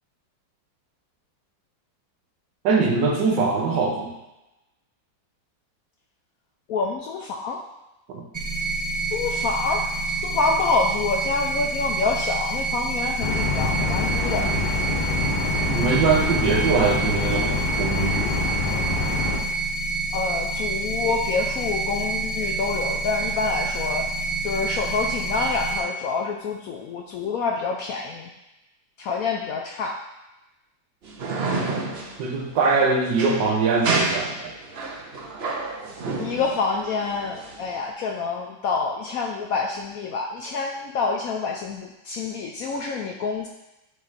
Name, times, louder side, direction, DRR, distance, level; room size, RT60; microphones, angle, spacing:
voice 1, 2.6-4.1 8.1-8.2 15.7-18.4 32.2-34.5, right 4 dB, 75° right, 0 dB, 1.7 m, -22 dB
voice 2, 6.7-7.6 9.1-9.9 10.2-14.5 20.1-24.0 24.4-28.3 29.0-30.0 36.2-43.5, left 4 dB, 70° left, 1 dB, 0.8 m, -27 dB
sound 1, 8.3-25.8, right 3 dB, 20° right, 0.5 m, -28 dB
sound 2, 13.2-19.4, left 3 dB, 35° left, 0.8 m, -26 dB
sound 3, 31.0-37.8, right 3 dB, 50° right, 0.7 m, -30 dB
9.5 x 3.2 x 4.1 m, 0.98 s
omnidirectional pair, 2.0 m